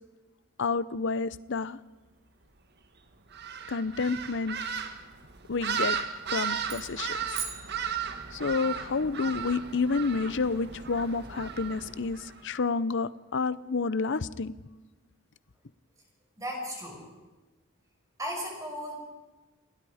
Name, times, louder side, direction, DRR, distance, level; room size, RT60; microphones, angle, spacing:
voice 1, 0.6-1.8 3.7-4.6 5.5-6.0 6.3-7.2 8.3-14.5, left 4 dB, 60° left, 17 dB, 0.7 m, -29 dB
sound 1, 3.3-12.4, right 7 dB, 55° right, 1.6 m, -35 dB
sound 2, 6.7-8.6, right 7 dB, 30° right, 2.5 m, -41 dB
voice 2, 16.4-17.1 18.2-18.9, equal, 15° right, 0 dB, 5.7 m, -36 dB
28.0 x 19.5 x 5.0 m, 1.2 s
head